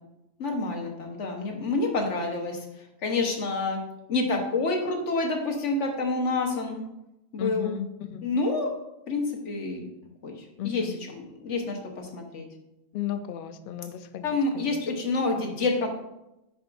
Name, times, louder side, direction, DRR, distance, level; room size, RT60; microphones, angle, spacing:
voice 1, 0.4-2.6 3.0-3.8 4.1-6.8 7.3-7.7 8.2-8.7 9.1-9.9 10.2-10.3 10.6-12.5 14.2-15.9, left 3 dB, 75° left, 2 dB, 1.5 m, -28 dB
voice 2, 7.4-8.3 10.6-11.0 12.9-14.9, left 10 dB, 60° left, 10 dB, 0.6 m, -35 dB
10.5 x 5.1 x 2.6 m, 0.91 s
omnidirectional pair, 1.2 m